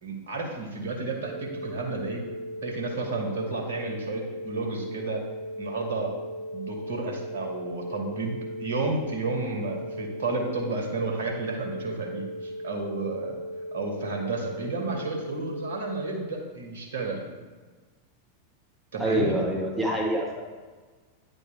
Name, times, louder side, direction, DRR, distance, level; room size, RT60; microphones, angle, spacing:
voice 1, 0.0-2.2 2.6-5.2 5.6-6.1 6.5-13.4 13.7-17.2 18.9-19.4, right 3 dB, 65° right, 2 dB, 1.2 m, -32 dB
sound 1, 1.2-16.2, equal, 30° right, 1.6 m, -37 dB
voice 2, 19.0-20.4, right 1 dB, ahead, -3 dB, 0.9 m, -26 dB
9.6 x 3.2 x 4.3 m, 1.4 s
figure-of-eight pair, 90°, 0 cm